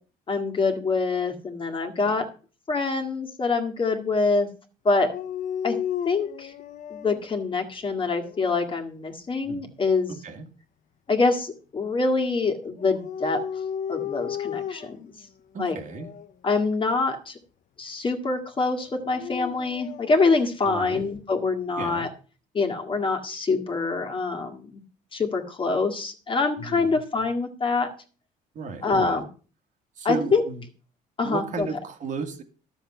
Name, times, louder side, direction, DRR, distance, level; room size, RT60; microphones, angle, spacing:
voice 1, 0.3-2.2 2.7-4.5 4.8-5.1 5.6-5.8 6.0-6.5 6.9-10.1 11.1-13.4 13.9-15.1 15.6-15.8 16.4-17.4 17.8-22.1 22.5-24.8 25.1-27.9 28.8-29.2 30.0-30.4 31.2-31.7, left 3 dB, 30° left, 3 dB, 1.9 m, -25 dB
Dog, 5.0-7.3 7.9-8.6 12.8-15.1 15.9-16.3 18.9-20.2, left 8 dB, 50° left, 0.7 m, -34 dB
voice 2, 15.5-16.1 20.6-21.0 21.8-22.1 26.6-27.0 28.5-29.2 30.0-30.6 31.2-32.4, right 5 dB, 50° right, 5 dB, 1.9 m, -34 dB
12.0 x 7.1 x 5.6 m, 0.38 s
cardioid pair, 110°, 17 cm